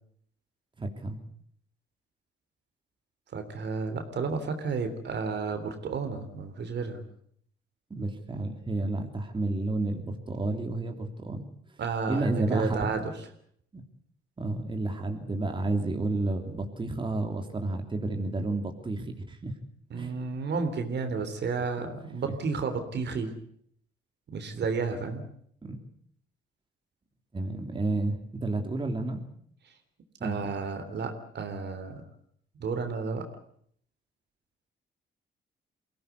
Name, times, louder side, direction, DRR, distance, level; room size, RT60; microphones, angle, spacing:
voice 1, 0.8-1.2 7.9-11.4 12.1-13.0 13.7-13.8 14.4-19.5 20.0-20.2 22.2-22.3 25.6-25.8 27.3-29.2 30.2-30.4, right 2 dB, 25° right, 4 dB, 3.1 m, -31 dB
voice 2, 3.3-7.0 11.8-13.0 19.9-23.3 24.3-25.3 30.2-32.0 32.6-33.2, right 5 dB, 60° right, 7 dB, 3.4 m, -32 dB
23.0 x 17.0 x 8.3 m, 0.65 s
cardioid pair, 90°, 20 cm